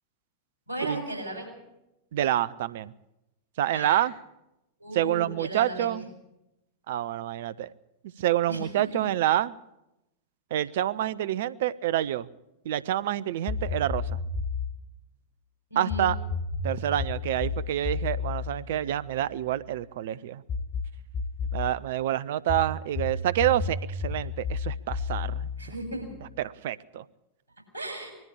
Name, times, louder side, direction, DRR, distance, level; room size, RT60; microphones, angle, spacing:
voice 1, 0.7-1.5 3.7-4.0 4.8-5.9 8.5-8.6 15.7-16.1 25.6-26.1 27.7-28.1, right 1 dB, 90° left, 2 dB, 7.1 m, -35 dB
voice 2, 2.1-2.9 3.6-4.1 4.9-6.1 6.9-7.7 8.2-9.5 10.5-12.3 12.6-14.2 15.8-16.2 16.6-20.4 21.5-25.5 26.4-27.0, right 12 dB, 55° right, 18 dB, 0.6 m, -27 dB
sound 1, 13.5-14.8 15.9-19.6 20.5-21.7 22.5-26.4, left 4 dB, 45° left, 3.5 m, -32 dB
21.0 x 14.0 x 8.8 m, 0.91 s
figure-of-eight pair, 90°, 0 cm